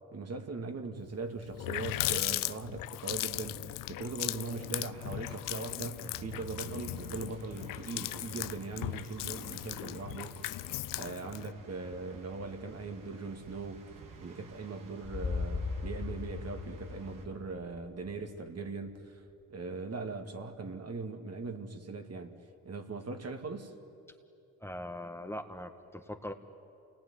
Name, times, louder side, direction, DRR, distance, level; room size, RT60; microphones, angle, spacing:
voice 1, 0.1-3.6 3.9-10.4 10.9-13.8 14.2-19.2 19.5-22.3 22.6-23.7, right 3 dB, 50° right, 5 dB, 2.5 m, -40 dB
Water tap faucet, 1.1-1.2 1.4-11.5, left 16 dB, 80° left, 0.5 m, -37 dB
sound 1, 4.2-17.3, right 5 dB, 75° right, 2.9 m, -52 dB
sound 2, 15.0-19.1, left 4 dB, 50° left, 3.9 m, -38 dB
voice 2, 24.6-26.3, left 1 dB, 10° left, 4 dB, 1.6 m, -41 dB
28.5 x 20.0 x 9.8 m, 2.7 s
supercardioid pair, 65°, 32 cm